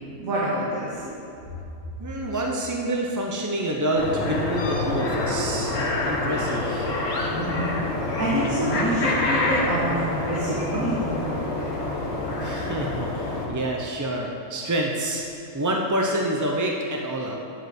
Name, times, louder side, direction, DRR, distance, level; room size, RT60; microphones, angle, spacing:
voice 1, 0.1-1.0 7.2-11.7, right 1 dB, 85° right, -7 dB, 1.9 m, -27 dB
voice 2, 2.0-6.9 12.4-15.2 15.5-17.4, right 1 dB, 20° right, 0 dB, 0.5 m, -27 dB
sound 1, 4.0-13.5, left 2 dB, 70° left, 1.7 m, -26 dB
8.1 x 7.0 x 7.7 m, 2.7 s
omnidirectional pair, 1.4 m